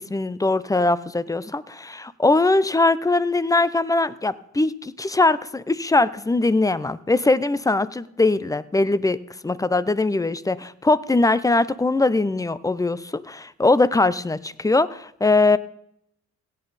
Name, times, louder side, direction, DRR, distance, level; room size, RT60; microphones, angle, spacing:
voice 1, 0.0-15.6, left 2 dB, 10° left, 18 dB, 0.5 m, -21 dB
17.0 x 8.9 x 4.1 m, 0.74 s
cardioid pair, 90°, 30 cm